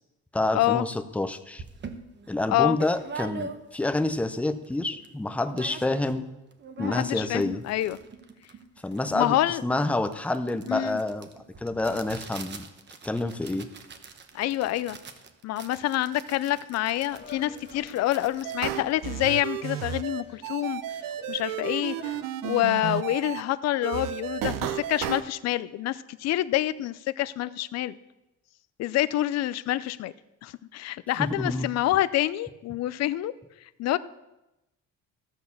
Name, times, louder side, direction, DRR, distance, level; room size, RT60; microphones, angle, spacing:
voice 1, 0.3-1.6 2.3-6.3 6.8-7.6 8.8-9.4 9.6-12.6 13.0-13.7 31.2-31.7, left 2 dB, 5° left, 9 dB, 0.6 m, -28 dB
sound 1, 1.1-1.2 1.6-4.0 4.4-4.5 4.6-5.1 5.4-6.2 6.5-19.6, right 5 dB, 35° right, 1.0 m, -44 dB
voice 2, 6.8-8.0 9.1-9.6 10.7-11.0 14.3-15.0 15.4-20.8 21.3-28.0 28.8-30.1 30.4-33.3 33.8-34.0, left 14 dB, 55° left, 16 dB, 0.5 m, -27 dB
sound 2, 17.1-22.3, left 5 dB, 35° left, 1.9 m, -50 dB
sound 3, 18.4-23.4 23.8-25.2, right 11 dB, 90° right, 0.9 m, -33 dB
14.0 x 6.4 x 6.9 m, 0.94 s
cardioid pair, 145°, 32 cm